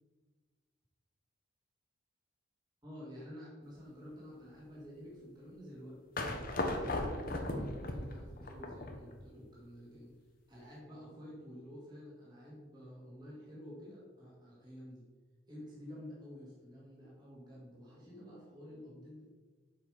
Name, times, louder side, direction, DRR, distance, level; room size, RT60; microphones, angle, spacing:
voice 1, 2.8-10.1 10.5-15.0 15.5-19.3, equal, 20° right, -7 dB, 2.3 m, -50 dB
sound 1, 6.2-9.2, left 1 dB, 45° left, 1.0 m, -37 dB
7.7 x 5.4 x 5.2 m, 1.4 s
head